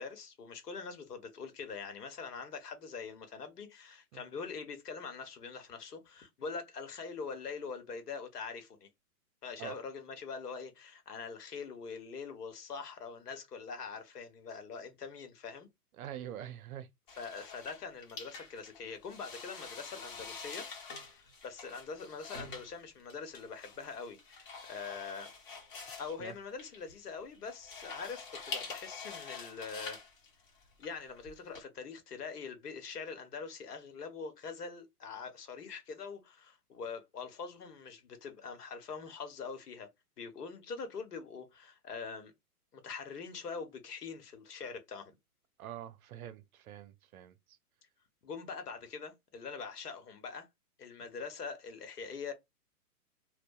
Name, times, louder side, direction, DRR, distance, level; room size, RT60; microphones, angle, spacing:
voice 1, 0.0-8.9 9.4-15.7 17.1-20.7 21.1-25.3 26.0-30.0 30.8-39.9 40.2-42.3 42.7-45.1 48.2-50.5 50.8-52.3, left 5 dB, 80° left, 1.0 m, -43 dB
voice 2, 16.0-16.9 25.9-26.3 45.6-47.3, right 10 dB, 65° right, 0.6 m, -45 dB
sound 1, 17.1-31.6, left 4 dB, 35° left, 1.0 m, -46 dB
2.7 x 2.1 x 2.2 m
hypercardioid pair, 140°, 46 cm